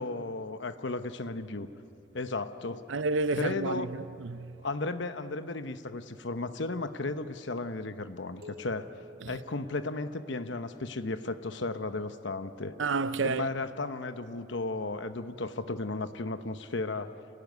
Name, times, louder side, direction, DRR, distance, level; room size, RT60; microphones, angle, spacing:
voice 1, 0.0-1.7 2.1-2.8 3.3-3.9 4.6-8.9 9.3-12.8 13.2-17.1, left 3 dB, 70° left, 1.0 m, -34 dB
voice 2, 2.9-4.5 12.8-13.5, right 3 dB, 80° right, 0.6 m, -30 dB
sound 1, 8.4-10.8, left 1 dB, 50° right, 2.2 m, -52 dB
27.5 x 17.5 x 9.5 m
head